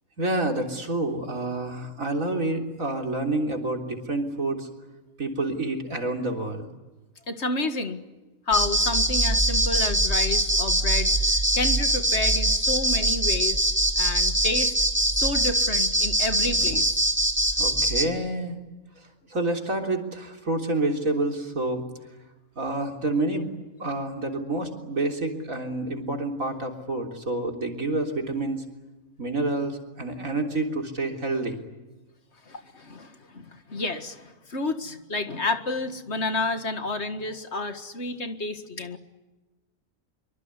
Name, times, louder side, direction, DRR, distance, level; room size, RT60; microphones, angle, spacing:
voice 1, 0.2-4.7 5.2-6.7 17.6-18.6 19.3-21.8 22.6-23.5 23.8-28.6 29.2-31.6, right 2 dB, 80° right, 3 dB, 4.0 m, -28 dB
voice 2, 7.3-8.0 8.5-13.7 14.0-14.7 15.1-17.0 32.5-39.0, left 2 dB, 55° left, 8 dB, 2.2 m, -30 dB
sound 1, 8.5-18.0, right 1 dB, 10° right, 2.2 m, -23 dB
25.5 x 24.5 x 9.7 m, 1.2 s
omnidirectional pair, 1.4 m